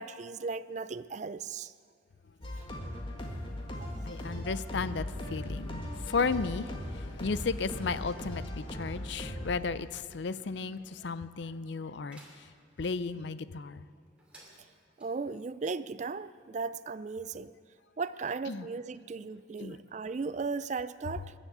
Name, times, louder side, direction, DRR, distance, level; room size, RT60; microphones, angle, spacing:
voice 1, 0.0-1.7 3.8-3.9 15.0-17.5 18.0-21.3, right 4 dB, 35° right, 15 dB, 0.3 m, -36 dB
sound 1, 2.4-9.6, left 1 dB, 25° left, 1.7 m, -38 dB
voice 2, 4.1-12.5 12.8-13.9 18.5-18.7 19.6-19.8, left 4 dB, 65° left, 15 dB, 0.5 m, -34 dB
sound 2, 12.1-12.9 14.2-15.1, right 1 dB, 5° right, 2.5 m, -57 dB
21.5 x 7.3 x 8.0 m, 2.1 s
head